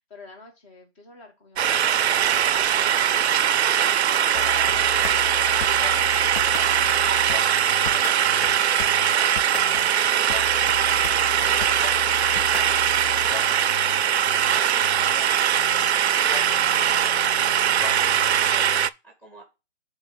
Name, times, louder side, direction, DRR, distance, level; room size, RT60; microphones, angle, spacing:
voice 1, 0.0-8.3 9.1-14.4 14.9-15.3, left 2 dB, 25° left, 1 dB, 2.5 m, -50 dB
sound 1, 1.6-18.9, right 9 dB, 70° right, 0.5 m, -21 dB
sound 2, 2.4-18.5, left 2 dB, 65° left, 2.7 m, -53 dB
sound 3, 4.3-18.9, left 7 dB, 45° left, 0.6 m, -36 dB
voice 2, 17.7-19.4, right 1 dB, 5° left, 3 dB, 2.0 m, -49 dB
7.8 x 4.0 x 4.0 m, 0.26 s
hypercardioid pair, 150°, 34 cm